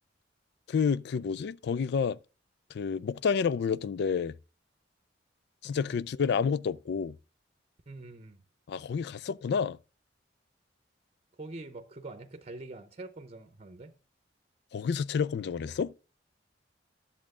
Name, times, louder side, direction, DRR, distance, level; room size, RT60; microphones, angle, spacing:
voice 1, 0.7-2.2 2.7-4.3 5.6-7.2 8.7-9.8 14.7-15.9, left 6 dB, 65° left, 0.3 m, -29 dB
voice 2, 7.9-8.4 11.4-13.9, right 2 dB, 35° right, 0.7 m, -44 dB
10.5 x 7.3 x 3.6 m
head